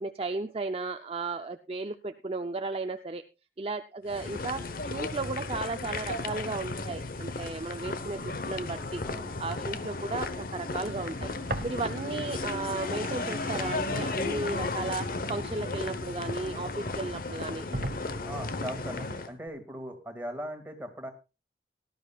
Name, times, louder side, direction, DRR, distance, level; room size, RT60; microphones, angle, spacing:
voice 1, 0.0-3.2 3.6-9.0 9.4-11.3 11.6-17.6, right 3 dB, 30° right, 7 dB, 0.6 m, -35 dB
sound 1, 4.1-19.3, left 3 dB, 50° left, 1.0 m, -34 dB
sound 2, 11.5-12.2 12.6-16.5 17.1-17.2 17.7-18.6, right 2 dB, 55° right, 1.1 m, -40 dB
voice 2, 18.2-21.1, equal, 10° right, 4 dB, 2.1 m, -39 dB
18.5 x 12.0 x 2.4 m, 0.28 s
head